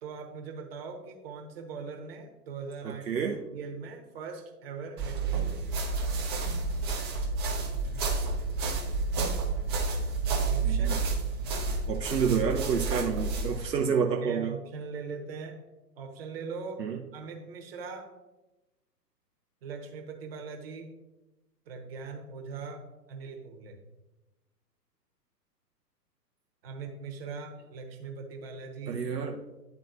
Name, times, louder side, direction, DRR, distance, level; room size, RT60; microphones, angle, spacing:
voice 1, 0.0-5.8 10.5-11.2 14.2-15.6 16.0-18.2 19.6-20.9 21.7-23.8 26.6-29.0, right 5 dB, 35° right, 2 dB, 1.1 m, -41 dB
voice 2, 2.8-3.4 10.6-11.0 11.6-14.6 16.8-17.0 28.9-29.4, right 6 dB, 75° right, 1 dB, 0.8 m, -29 dB
sound 1, 5.0-13.6, right 3 dB, 15° right, 0.6 m, -30 dB
11.0 x 3.9 x 2.5 m, 1.0 s
figure-of-eight pair, 120°, 50 cm